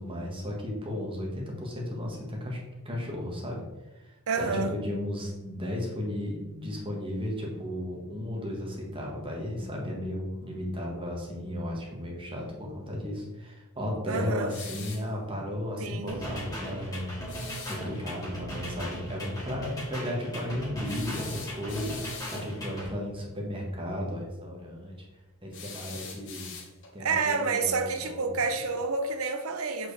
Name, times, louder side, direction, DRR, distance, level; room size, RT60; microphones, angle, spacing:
voice 1, 0.0-2.6 2.8-3.6 3.9-17.1 17.4-24.9 25.4-26.5 26.9-28.3, left 1 dB, 25° right, 1.4 m, -34 dB
voice 2, 4.3-4.7 14.1-14.5 15.8-16.3 27.0-29.9, right 4 dB, 70° right, 0.7 m, -29 dB
sound 1, 14.5-15.1 17.3-17.8 20.8-22.5 25.5-27.0, left 5 dB, 55° left, 1.1 m, -43 dB
sound 2, 16.1-22.9, equal, 15° left, 2.0 m, -38 dB
7.6 x 4.4 x 3.3 m
head